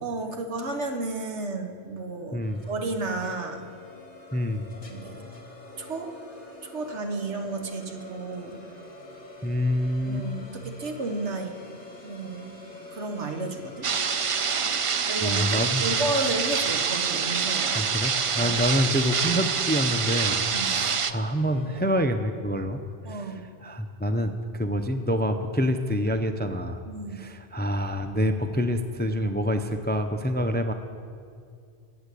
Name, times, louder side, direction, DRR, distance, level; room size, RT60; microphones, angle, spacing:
voice 1, 0.0-2.4 2.7-3.6 4.8-5.2 5.8-6.1 6.6-8.6 10.1-11.6 12.0-12.6 12.9-13.9 15.1-17.9 18.4-18.5 20.5-20.8 23.0-23.4 26.8-27.2, right 2 dB, 70° right, 5 dB, 1.6 m, -32 dB
sound 1, 2.4-21.9, left 1 dB, 35° left, 2.3 m, -46 dB
voice 2, 4.3-4.6 9.4-10.2 15.2-15.9 17.8-22.8 23.1-23.3 23.6-26.8 27.1-30.7, equal, 10° left, 8 dB, 0.5 m, -27 dB
sound 2, 13.8-21.1, right 6 dB, 55° right, 0.3 m, -26 dB
20.5 x 7.8 x 8.4 m, 2.3 s
omnidirectional pair, 1.2 m